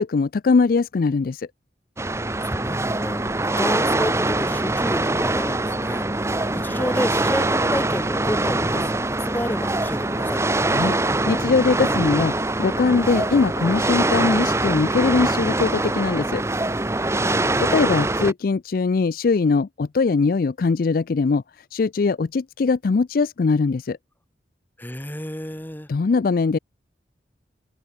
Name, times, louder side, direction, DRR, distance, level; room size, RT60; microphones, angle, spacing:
voice 1, 0.0-1.5 10.7-10.9 11.3-12.3 12.6-16.4 17.6-21.4 21.7-24.0 25.9-26.6, left 4 dB, 50° left, 0.4 m, -21 dB
sound 1, 2.0-18.3, right 2 dB, 15° right, 1.1 m, -23 dB
voice 2, 2.4-10.4 17.2-17.6 24.8-25.9, equal, 10° left, 2.0 m, -31 dB
head